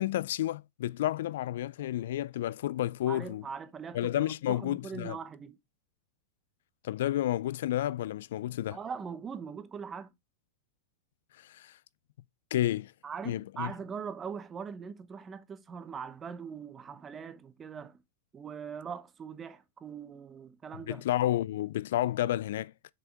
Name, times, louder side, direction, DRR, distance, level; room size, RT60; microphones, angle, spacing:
voice 1, 0.0-3.4 3.9-5.2 6.8-8.8 11.4-11.8 12.5-12.9 13.3-13.7 20.9-22.7, left 13 dB, 70° left, 0.3 m, -31 dB
voice 2, 3.1-5.6 8.7-10.1 13.0-18.0 18.3-21.0, right 6 dB, 20° right, 0.9 m, -41 dB
6.6 x 5.5 x 3.5 m
hypercardioid pair, 120°, 0 cm